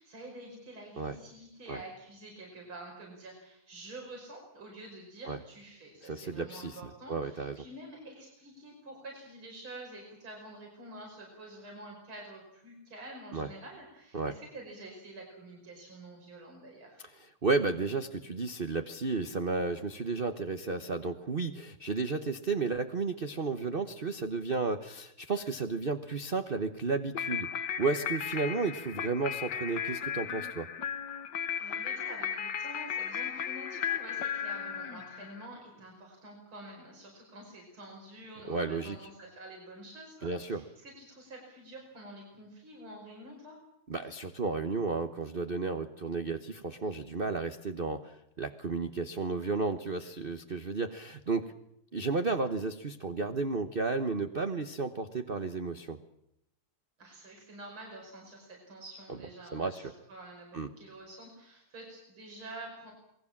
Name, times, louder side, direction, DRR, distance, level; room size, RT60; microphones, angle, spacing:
voice 1, 0.0-17.0 31.6-43.6 57.0-62.9, right 1 dB, 70° right, 0 dB, 6.1 m, -48 dB
voice 2, 6.0-7.6 13.3-13.5 14.1-14.3 17.2-27.5 27.8-30.7 38.5-39.0 40.2-40.6 43.9-51.5 51.9-56.0 59.5-59.9 60.5-60.7, right 4 dB, 35° right, 8 dB, 1.0 m, -33 dB
sound 1, 27.1-35.5, left 8 dB, 55° left, 1.7 m, -35 dB
27.5 x 20.5 x 7.3 m, 0.79 s
omnidirectional pair, 2.4 m